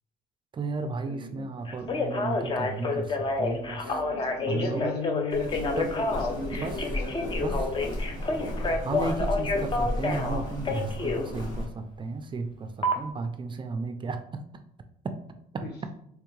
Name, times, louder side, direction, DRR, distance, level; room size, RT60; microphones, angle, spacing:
voice 1, 0.5-3.9 4.5-4.9 5.8-5.9 6.6-6.8 7.4-7.7 8.8-14.4 15.0-15.2 15.5-15.9, right 3 dB, 30° right, 8 dB, 0.4 m, -34 dB
voice 2, 1.0-1.5 3.8-8.2 15.6-15.7, left 2 dB, 75° left, 2 dB, 1.1 m, -37 dB
Telephone, 1.7-11.3 12.8-12.9, left 3 dB, 30° left, 0.5 m, -29 dB
Walk footsteps, 5.3-11.6, left 1 dB, 55° left, 1.4 m, -34 dB
3.4 x 3.3 x 3.1 m, 0.71 s
cardioid pair, 110°, 17 cm